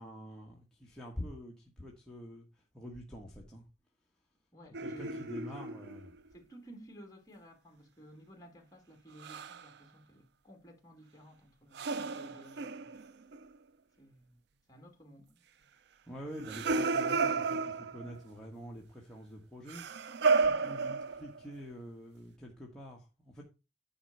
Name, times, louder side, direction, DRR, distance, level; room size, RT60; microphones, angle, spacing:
voice 1, 0.0-3.6 4.8-6.1 16.0-23.4, equal, 5° left, 1.4 m, -46 dB
voice 2, 4.5-5.3 6.3-12.9 14.0-14.4 14.7-15.3 20.4-20.7, right 1 dB, 20° left, 2.4 m, -55 dB
sound 1, 4.7-6.2 9.2-9.7 11.7-13.5 16.3-18.2 19.7-21.4, right 4 dB, 65° right, 0.5 m, -32 dB
9.9 x 4.0 x 6.8 m
head